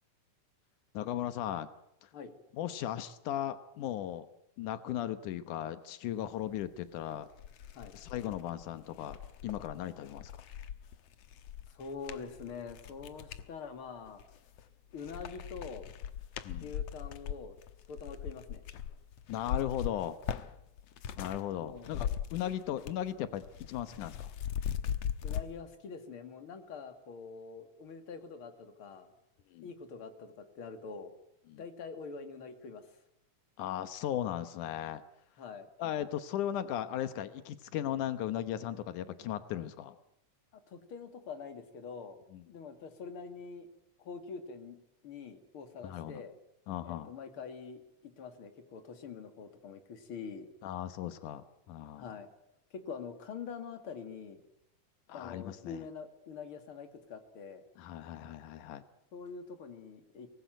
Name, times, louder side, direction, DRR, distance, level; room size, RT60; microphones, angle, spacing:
voice 1, 0.9-1.7 2.0-2.1 2.6-4.3 4.6-7.3 7.9-9.2 9.4-10.4 16.5-16.7 19.3-20.2 21.2-24.3 29.5-29.7 31.5-31.6 33.6-35.0 35.8-40.0 42.3-42.4 45.8-46.2 46.7-47.1 50.6-52.1 55.1-55.8 57.8-58.8, left 11 dB, 85° left, 12 dB, 2.6 m, -37 dB
sound 1, 6.8-6.9 7.3-13.5 14.1-14.7 15.0-21.4 21.7-23.1 23.3-25.5, left 9 dB, 65° left, 2.0 m, -40 dB
voice 2, 11.7-14.2 14.9-15.9 16.6-17.6 17.9-18.6 21.6-21.9 25.2-29.1 29.6-31.1 31.6-33.0 35.4-35.7 40.5-42.2 42.5-43.7 44.0-44.8 45.0-46.3 46.8-50.5 52.0-52.3 52.7-54.4 55.1-57.6 59.1-60.3, left 5 dB, 45° left, 7 dB, 3.0 m, -45 dB
24.5 x 19.5 x 9.1 m, 0.79 s
omnidirectional pair, 3.5 m